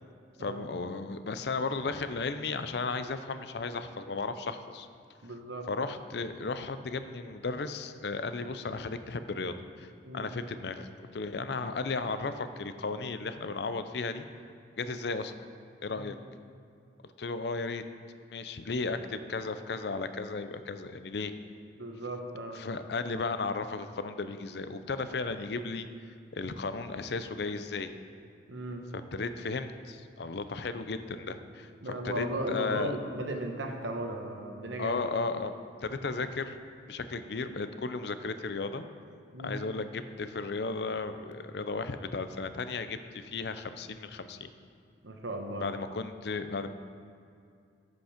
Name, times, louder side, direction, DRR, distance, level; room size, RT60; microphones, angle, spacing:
voice 1, 0.4-4.9 5.7-14.3 14.8-15.3 15.8-16.1 17.0-17.8 18.3-21.3 22.5-27.9 28.9-33.0 34.8-35.5 35.8-36.6 36.9-38.8 39.4-44.5 45.6-46.7, left 4 dB, 60° left, 10 dB, 0.5 m, -35 dB
voice 2, 5.2-5.7 10.0-10.3 15.9-16.1 21.8-22.6 28.5-28.9 31.8-35.1 39.3-39.6 45.0-45.7, right 1 dB, 85° right, 4 dB, 1.1 m, -36 dB
13.5 x 5.3 x 5.1 m, 2.4 s
head